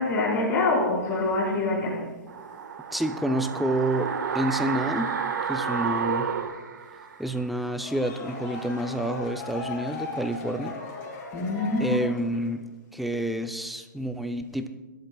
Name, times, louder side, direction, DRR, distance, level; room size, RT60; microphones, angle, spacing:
voice 1, 0.0-2.0 11.3-12.0, left 2 dB, 20° left, -6 dB, 4.7 m, -25 dB
sound 1, 2.3-7.4 7.7-7.8, right 6 dB, 75° right, 1.6 m, -30 dB
voice 2, 2.9-5.1 5.5-6.3 7.2-10.8 11.8-12.6 12.9-14.7, right 1 dB, ahead, 7 dB, 0.6 m, -28 dB
sound 2, 7.6-12.6, left 3 dB, 40° left, 5.8 m, -38 dB
26.0 x 13.0 x 2.4 m, 1.2 s
hypercardioid pair, 150°, 10 cm